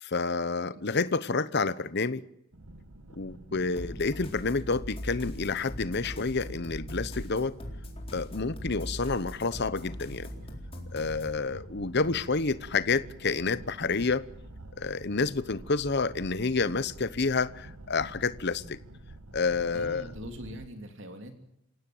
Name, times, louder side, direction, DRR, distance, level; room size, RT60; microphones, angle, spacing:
voice 1, 0.0-2.2 3.2-7.5 8.1-10.3 10.9-14.2 14.8-18.8 19.3-20.1, left 4 dB, 50° left, 0.9 m, -29 dB
sound 1, 2.5-20.7, right 1 dB, 85° right, 1.5 m, -48 dB
sound 2, 3.7-11.4, left 1 dB, 25° left, 3.9 m, -40 dB
voice 2, 19.7-21.3, equal, 55° right, 3.1 m, -42 dB
27.5 x 17.0 x 7.9 m
head